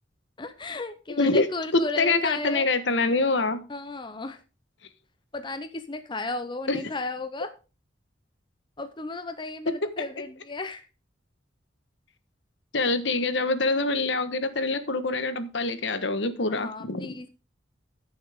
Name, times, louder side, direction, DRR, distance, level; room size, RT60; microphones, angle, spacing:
voice 1, 0.4-2.7 3.7-4.4 5.3-7.5 8.8-10.8 16.5-17.3, left 3 dB, 25° left, 10 dB, 0.7 m, -34 dB
voice 2, 1.7-3.6 6.7-6.8 12.7-17.2, left 3 dB, 70° left, 10 dB, 1.3 m, -25 dB
14.5 x 7.2 x 3.6 m, 0.31 s
head